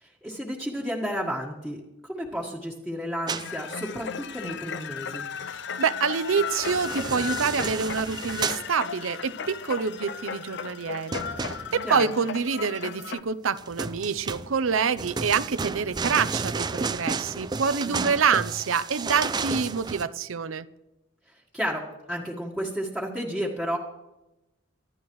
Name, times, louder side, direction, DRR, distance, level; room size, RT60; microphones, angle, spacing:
voice 1, 0.0-5.2 11.8-12.0 17.9-18.1 21.5-21.8 22.1-23.8, equal, ahead, -5 dB, 1.6 m, -32 dB
sound 1, 3.3-3.5 6.3-8.7 11.1-12.0 13.6-20.0, right 4 dB, 20° right, 0.4 m, -32 dB
sound 2, 3.4-13.2, left 7 dB, 60° left, 0.6 m, -35 dB
voice 2, 5.5-20.7, right 6 dB, 85° right, 15 dB, 0.7 m, -27 dB
25.0 x 11.5 x 3.1 m, 0.97 s
head